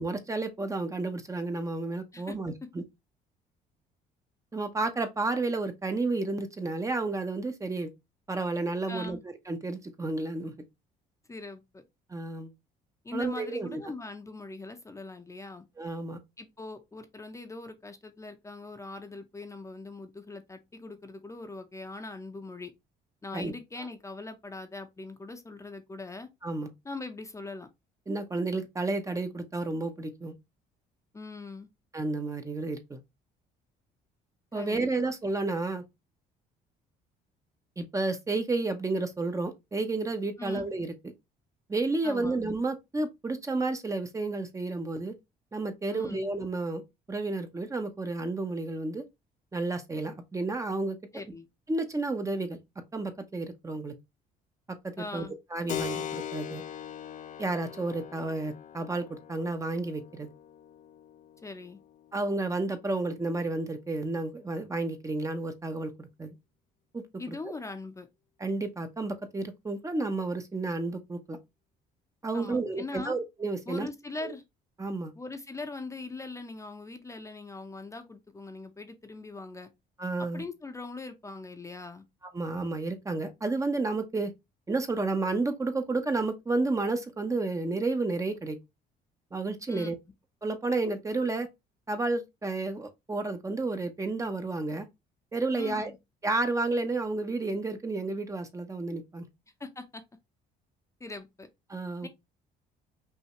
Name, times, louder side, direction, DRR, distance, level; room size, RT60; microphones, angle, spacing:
voice 1, 0.0-2.8 4.5-7.9 8.3-9.2 9.5-10.5 12.1-12.5 13.1-13.8 15.8-16.2 23.3-23.5 26.4-26.7 28.1-30.3 31.9-33.0 34.5-35.8 37.8-40.9 41.7-45.1 45.5-46.8 47.1-49.0 49.5-51.0 51.7-52.6 52.9-53.9 54.8-55.3 55.5-56.6 57.4-60.3 62.1-66.3 66.9-67.4 68.4-71.4 72.2-73.9 74.2-74.3 74.8-75.1 80.0-80.4 82.3-84.3 84.7-88.6 89.3-90.0 90.4-91.5 91.9-94.9 95.3-95.9 96.2-99.2 101.7-102.1, right 3 dB, 20° right, 0.8 m, -31 dB
voice 2, 8.9-9.2 11.3-11.8 13.0-15.7 16.4-22.7 23.2-26.3 26.8-27.7 31.1-31.7 34.5-34.9 40.4-40.7 42.0-42.4 45.9-46.3 51.1-51.5 55.0-55.3 61.4-61.8 67.2-68.1 72.3-73.2 73.7-74.4 75.1-79.7 80.3-82.0 89.7-89.9 95.6-96.0 99.6-100.0 101.0-101.5 102.0-102.1, left 3 dB, 15° left, 0.8 m, -41 dB
Keyboard (musical), 55.7-63.9, left 9 dB, 50° left, 0.6 m, -41 dB
5.6 x 2.7 x 3.0 m
cardioid pair, 110°, 17 cm